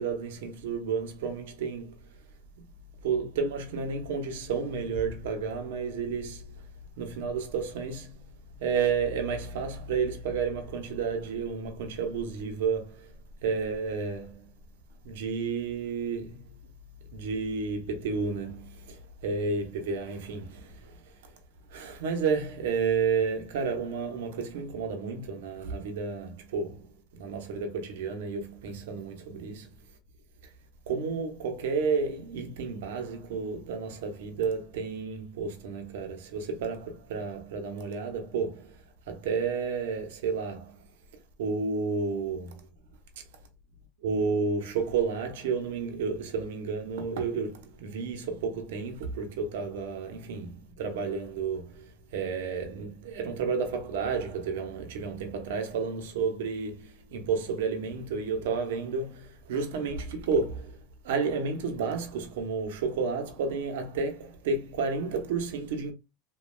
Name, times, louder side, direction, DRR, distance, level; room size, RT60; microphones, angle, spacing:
voice 1, 0.0-1.9 3.0-6.6 7.0-8.2 8.6-13.1 13.4-14.5 15.0-16.4 17.1-21.0 21.7-26.8 27.1-29.7 30.9-38.8 39.1-40.7 41.4-42.6 44.0-60.8 61.0-65.9, right 5 dB, 85° right, 0.7 m, -31 dB
3.1 x 2.2 x 2.2 m
supercardioid pair, 115°, 0 cm